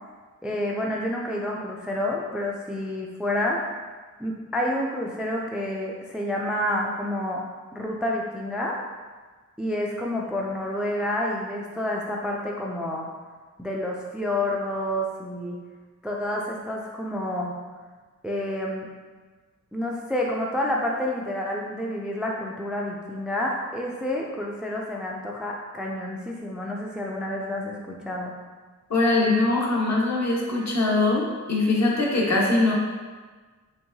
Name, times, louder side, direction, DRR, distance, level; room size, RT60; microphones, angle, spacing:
voice 1, 0.4-3.6 4.2-7.4 7.7-8.8 9.6-13.1 13.6-15.6 16.0-17.5 18.2-18.9 19.7-28.3, left 1 dB, 5° right, -1 dB, 0.3 m, -29 dB
voice 2, 28.9-32.7, left 2 dB, 60° left, -3 dB, 1.0 m, -22 dB
4.5 x 3.5 x 2.7 m, 1.4 s
wide cardioid pair, 155°, 31 cm